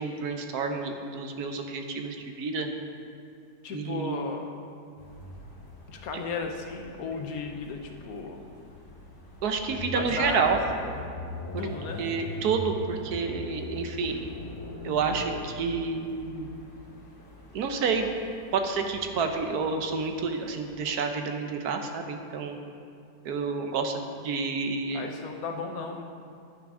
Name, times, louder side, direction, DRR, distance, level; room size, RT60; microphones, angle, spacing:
voice 1, 0.0-2.7 3.7-4.3 6.1-6.2 9.4-10.6 11.5-11.7 12.0-14.3 14.8-16.5 17.5-18.1 18.5-22.6 23.2-25.1, right 5 dB, 70° right, 5 dB, 1.2 m, -29 dB
voice 2, 3.6-4.5 5.9-8.5 9.9-10.6 10.8-10.9 11.6-12.0 24.9-26.0, left 4 dB, 65° left, 4 dB, 1.1 m, -35 dB
sound 1, 5.0-20.7, left 1 dB, 45° left, 2.4 m, -42 dB
9.6 x 9.2 x 3.7 m, 2.4 s
omnidirectional pair, 1.8 m